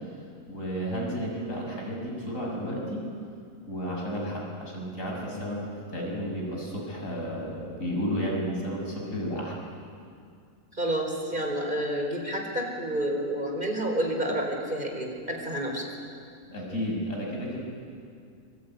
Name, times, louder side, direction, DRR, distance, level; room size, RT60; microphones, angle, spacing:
voice 1, 0.5-3.0 3.7-5.6 5.9-9.6 16.5-17.6, equal, 65° left, -2 dB, 6.9 m, -32 dB
voice 2, 10.8-15.8, right 1 dB, 35° right, 2 dB, 4.4 m, -29 dB
25.5 x 24.5 x 9.3 m, 2.3 s
omnidirectional pair, 1.5 m